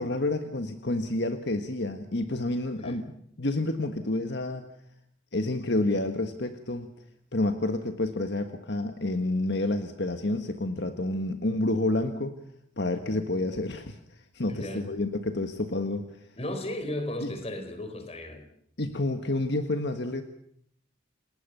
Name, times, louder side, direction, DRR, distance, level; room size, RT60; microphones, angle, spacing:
voice 1, 0.0-3.1 3.4-4.6 5.3-6.9 7.3-12.4 12.8-16.3 17.2-17.3 18.8-20.2, left 2 dB, 60° left, 8 dB, 1.5 m, -29 dB
voice 2, 14.5-14.9 16.4-18.5, left 1 dB, 30° left, 8 dB, 4.4 m, -35 dB
29.0 x 19.0 x 6.9 m, 0.68 s
head